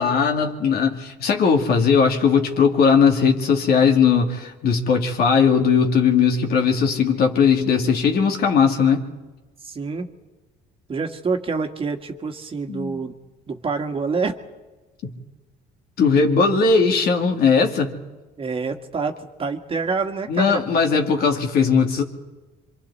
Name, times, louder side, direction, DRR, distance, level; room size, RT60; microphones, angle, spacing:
voice 1, 0.0-9.1 12.7-13.0 15.0-15.1 16.0-18.0 20.3-22.0, left 5 dB, 65° left, 3 dB, 2.5 m, -18 dB
voice 2, 9.6-10.1 10.9-13.2 13.5-14.4 18.4-20.6, right 4 dB, 35° right, 5 dB, 1.7 m, -27 dB
26.5 x 25.5 x 4.2 m, 1.2 s
cardioid pair, 110°, 17 cm